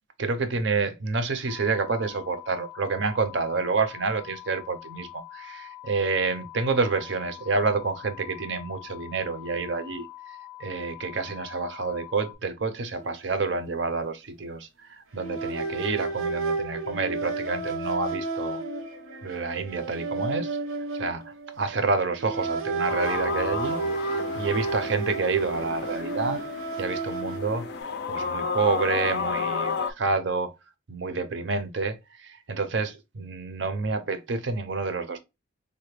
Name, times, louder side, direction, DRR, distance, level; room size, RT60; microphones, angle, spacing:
voice 1, 0.2-18.6 19.2-20.6 20.9-26.4 26.8-27.7 28.1-30.5 30.9-35.2, right 4 dB, 60° right, 0.5 m, -28 dB
sound 1, 1.5-12.3, left 15 dB, 5° right, 0.5 m, -44 dB
sound 2, 12.9-13.1 13.4-13.6 15.1-21.8 22.2-27.8, right 3 dB, 90° right, 0.8 m, -32 dB
sound 3, 22.9-29.9, left 5 dB, 50° left, 0.3 m, -32 dB
3.2 x 2.1 x 3.1 m
head